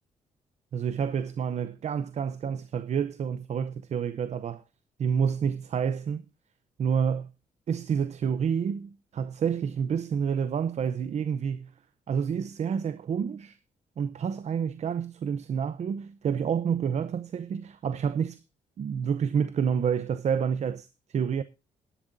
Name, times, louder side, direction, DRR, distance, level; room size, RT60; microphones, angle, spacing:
voice 1, 0.7-4.6 5.0-6.2 6.8-7.3 7.7-11.7 12.1-13.6 14.0-18.4 18.8-21.4, right 7 dB, 55° right, 0.7 m, -29 dB
17.5 x 11.0 x 2.6 m
cardioid pair, 100°, 14 cm